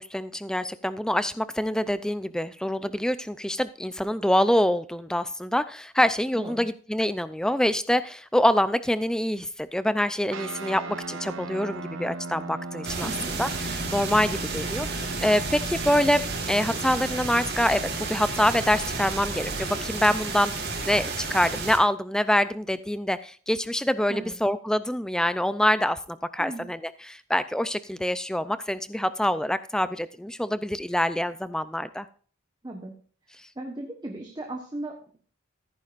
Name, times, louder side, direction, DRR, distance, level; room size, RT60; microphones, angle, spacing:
voice 1, 0.0-32.1, left 1 dB, 5° left, 14 dB, 0.4 m, -25 dB
voice 2, 6.3-6.7 13.0-13.3 24.1-24.3 26.4-26.6 32.6-32.9 33.6-35.2, right 2 dB, 20° right, 1 dB, 1.2 m, -36 dB
sound 1, 10.3-21.0, right 2 dB, 70° right, 0.9 m, -39 dB
sound 2, 12.8-21.8, right 3 dB, 50° right, 2.8 m, -32 dB
14.5 x 9.6 x 2.5 m, 0.42 s
head